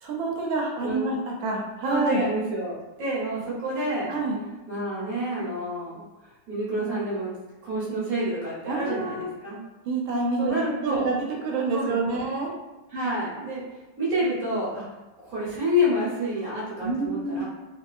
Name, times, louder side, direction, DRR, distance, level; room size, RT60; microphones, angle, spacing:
voice 1, 0.0-2.2 4.1-4.4 8.7-9.3 9.9-12.5 16.8-17.5, right 3 dB, 80° right, -1 dB, 1.3 m, -27 dB
voice 2, 0.8-1.2 1.8-4.1 4.7-7.4 7.6-9.6 10.4-11.1 11.7-12.2 12.9-13.6 14.0-14.8 15.2-17.5, equal, 55° right, -7 dB, 1.1 m, -28 dB
3.0 x 2.7 x 2.3 m, 1.1 s
omnidirectional pair, 2.2 m